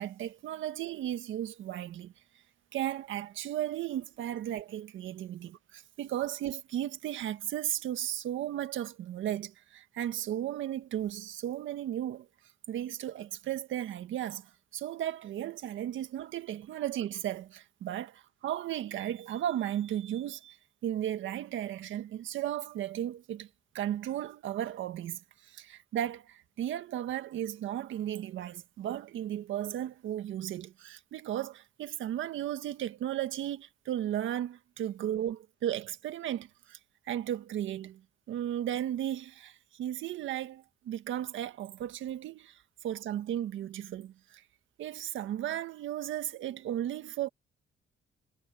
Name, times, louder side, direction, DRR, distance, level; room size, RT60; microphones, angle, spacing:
voice 1, 0.0-2.1 2.7-12.3 12.7-20.6 20.8-23.5 23.7-36.8 37.0-38.0 38.3-44.4 44.8-47.3, right 11 dB, 80° right, 1.7 m, -35 dB
cardioid pair, 90°, 20 cm